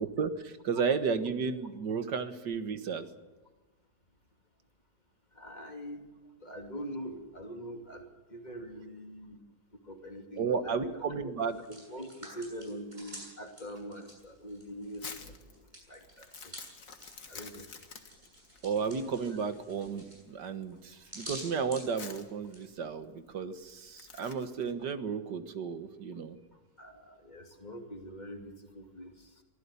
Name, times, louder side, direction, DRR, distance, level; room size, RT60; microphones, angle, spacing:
voice 1, 0.0-3.1 10.4-11.6 18.6-26.4, right 5 dB, 70° right, 10 dB, 2.0 m, -33 dB
voice 2, 5.3-6.1 6.4-8.0 8.3-9.4 9.8-11.3 11.7-15.3 15.9-16.5 17.3-17.7 26.8-29.3, equal, 25° left, 3 dB, 2.7 m, -43 dB
Hands, 11.4-15.1 15.4-22.7, equal, 25° right, 8.3 m, -49 dB
Crumpling crinkling, 14.2-24.7, left 5 dB, 50° left, 2.0 m, -50 dB
23.5 x 16.0 x 8.4 m, 1.2 s
omnidirectional pair, 1.9 m